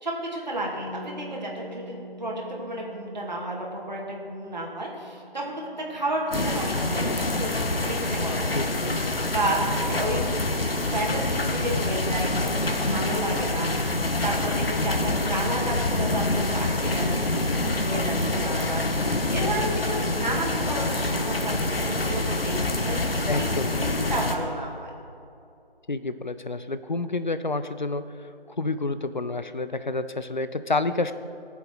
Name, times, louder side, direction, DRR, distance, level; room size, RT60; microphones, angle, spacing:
voice 1, 0.0-8.6 9.3-10.3 10.8-13.8 14.2-21.5 21.8-23.5 23.7-24.9, right 1 dB, 45° right, -2 dB, 2.1 m, -32 dB
Bass guitar, 0.8-7.0, right 1 dB, 15° left, 1.3 m, -46 dB
sound 1, 6.3-24.3, left 2 dB, 70° left, 1.3 m, -26 dB
voice 2, 8.6-9.2 23.3-23.7 25.9-31.1, left 3 dB, 50° left, 12 dB, 0.6 m, -29 dB
18.0 x 7.1 x 4.8 m, 2.6 s
figure-of-eight pair, 165°, 30 cm